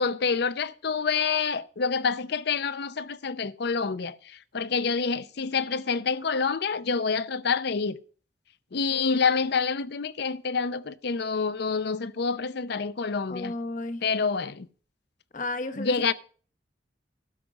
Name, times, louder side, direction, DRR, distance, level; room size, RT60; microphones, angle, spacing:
voice 1, 0.0-8.0 8.7-13.5 14.0-14.7 15.8-16.1, left 5 dB, 60° left, 0.6 m, -27 dB
voice 2, 13.3-14.0 15.3-16.0, left 2 dB, 45° left, 1.1 m, -33 dB
12.5 x 5.2 x 7.2 m
head